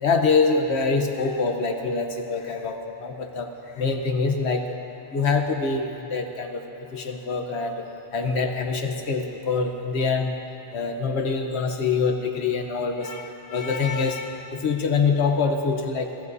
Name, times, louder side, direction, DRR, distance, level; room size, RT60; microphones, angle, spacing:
voice 1, 0.0-3.5 3.8-4.8 5.1-6.6 6.9-7.8 8.1-10.4 10.7-16.1, left 4 dB, 85° left, 4 dB, 1.3 m, -25 dB
26.0 x 16.0 x 2.7 m, 2.7 s
omnidirectional pair, 1.1 m